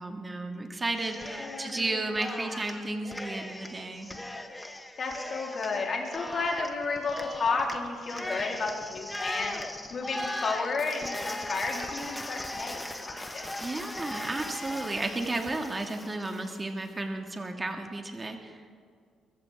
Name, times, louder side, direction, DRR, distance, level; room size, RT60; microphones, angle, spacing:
voice 1, 0.0-4.1 13.6-18.6, right 2 dB, 25° right, 4 dB, 1.9 m, -33 dB
Cheering, 1.0-1.8 2.1-16.6, left 1 dB, 10° left, 1.2 m, -38 dB
voice 2, 1.4-2.0 5.0-13.4, left 4 dB, 50° left, -1 dB, 3.5 m, -32 dB
22.5 x 14.5 x 3.6 m, 2.2 s
cardioid pair, 90°, 0 cm